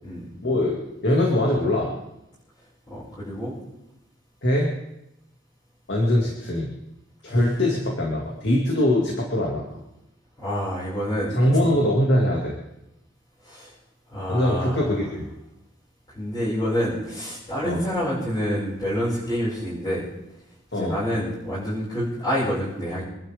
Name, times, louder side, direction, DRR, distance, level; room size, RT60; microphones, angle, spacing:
voice 1, 0.4-1.9 4.4-4.7 5.9-6.7 7.2-9.6 11.3-12.5 14.3-15.3 17.6-17.8 20.7-20.9, left 1 dB, 60° left, -2 dB, 2.7 m, -22 dB
voice 2, 2.9-3.5 10.4-11.3 13.4-13.7 14.1-15.0 16.1-20.0 20.7-23.0, equal, 20° left, -12 dB, 6.8 m, -27 dB
27.0 x 11.5 x 3.8 m, 0.88 s
head